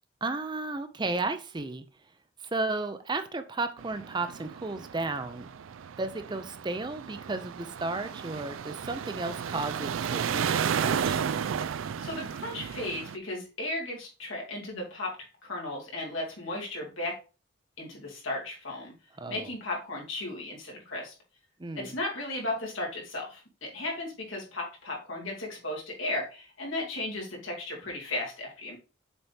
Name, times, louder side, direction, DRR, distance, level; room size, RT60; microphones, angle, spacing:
voice 1, 0.2-1.8 2.5-5.5 6.0-11.2 19.2-19.5 21.6-22.0, right 3 dB, 20° right, 10 dB, 0.5 m, -33 dB
sound 1, 3.8-13.2, right 7 dB, 85° right, 0.4 m, -33 dB
voice 2, 12.0-15.2 15.4-17.1 17.8-18.9 19.3-21.1 21.7-28.8, left 2 dB, 80° left, -2 dB, 2.6 m, -35 dB
7.1 x 4.2 x 3.4 m, 0.32 s
head